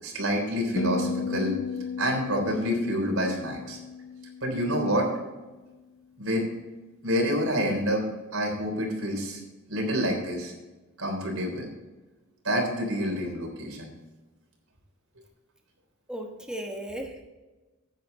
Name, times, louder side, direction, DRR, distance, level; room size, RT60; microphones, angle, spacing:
voice 1, 0.0-1.6 2.0-3.8 4.4-5.1 6.2-6.5 7.0-8.1 8.3-9.4 9.7-10.5 11.0-11.7 12.4-13.9, equal, 85° right, 1 dB, 3.6 m, -27 dB
sound 1, 0.8-5.1, left 4 dB, 70° left, 0.5 m, -34 dB
voice 2, 16.1-17.2, right 1 dB, 5° right, 2 dB, 1.2 m, -36 dB
10.5 x 9.3 x 4.0 m, 1.2 s
head